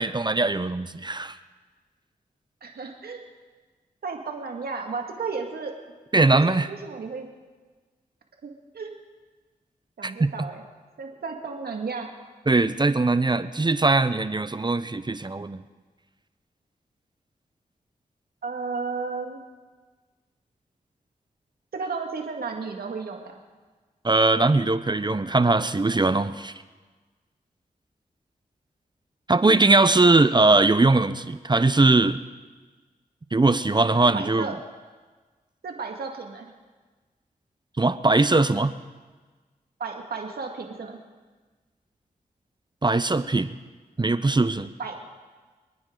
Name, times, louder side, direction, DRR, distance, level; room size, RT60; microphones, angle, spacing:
voice 1, 0.0-1.3 6.1-6.7 10.0-10.3 12.5-15.6 24.0-26.5 29.3-32.2 33.3-34.5 37.8-38.8 42.8-43.5 44.0-44.7, right 3 dB, 30° right, 13 dB, 0.7 m, -20 dB
voice 2, 2.6-3.2 4.0-5.8 6.3-6.4 6.7-7.3 8.4-8.9 10.0-10.6 11.0-12.1 18.4-19.4 21.7-23.4 33.9-34.6 35.6-36.5 39.8-41.0 44.8-45.0, right 4 dB, 80° right, 2 dB, 2.0 m, -33 dB
26.5 x 9.6 x 3.9 m, 1.3 s
cardioid pair, 40°, 16 cm